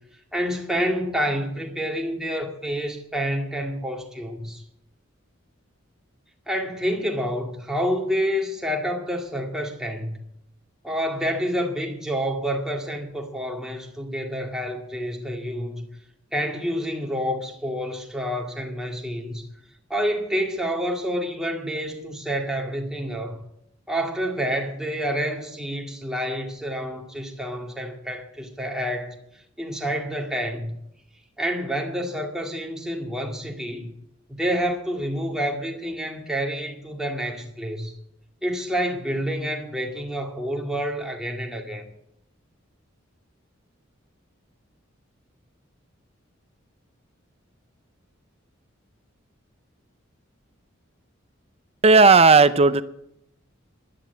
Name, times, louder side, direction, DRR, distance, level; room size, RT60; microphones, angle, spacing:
voice 1, 0.3-4.6 6.5-10.2 10.8-15.9 16.3-19.4 19.9-23.4 23.9-29.2 29.6-30.7 31.4-33.9 34.3-37.9 38.4-41.8, equal, 5° right, 2.2 m, -28 dB
voice 2, 51.8-52.8, right 4 dB, 30° right, 0.6 m, -13 dB
12.5 x 11.5 x 8.3 m
head